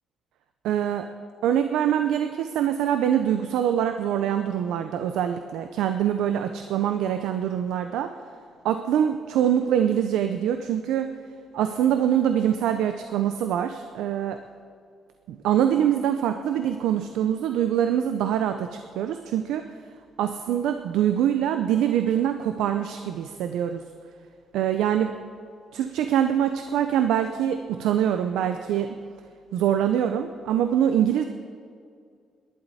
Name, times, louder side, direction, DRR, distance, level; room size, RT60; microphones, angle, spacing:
voice 1, 0.6-1.1 1.4-8.1 8.6-11.1 11.5-14.4 15.3-19.6 20.2-23.8 24.5-25.2 25.7-28.9 29.5-31.2, right 10 dB, 85° right, 8 dB, 0.5 m, -24 dB
21.0 x 11.0 x 4.2 m, 2.2 s
cardioid pair, 90°, 0 cm